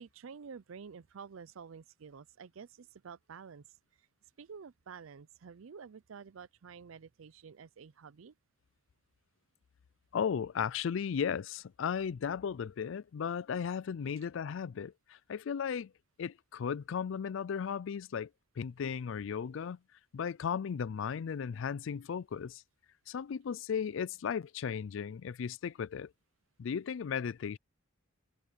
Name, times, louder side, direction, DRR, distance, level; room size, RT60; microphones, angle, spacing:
voice 1, 0.0-3.7 4.0-4.1 4.4-8.3, right 6 dB, 80° right, 0.5 m, -50 dB
voice 2, 10.1-15.9 16.2-18.3 18.6-19.8 20.1-22.6 23.1-26.1 26.6-27.6, left 7 dB, 65° left, 0.4 m, -35 dB
head